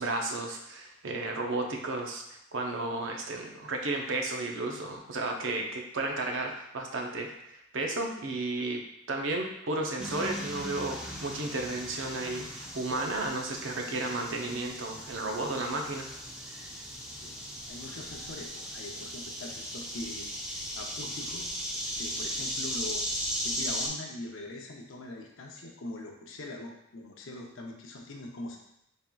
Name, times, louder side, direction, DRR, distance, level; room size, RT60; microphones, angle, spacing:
voice 1, 0.0-2.2 2.5-8.8 9.1-16.1, right 2 dB, 65° right, 2 dB, 0.6 m, -33 dB
sound 1, 10.0-23.9, equal, 5° right, 0.5 m, -37 dB
voice 2, 17.1-17.4 17.7-21.5 22.0-23.1 23.4-28.6, left 2 dB, 70° left, 1 dB, 0.6 m, -42 dB
4.2 x 3.6 x 2.3 m, 0.78 s
head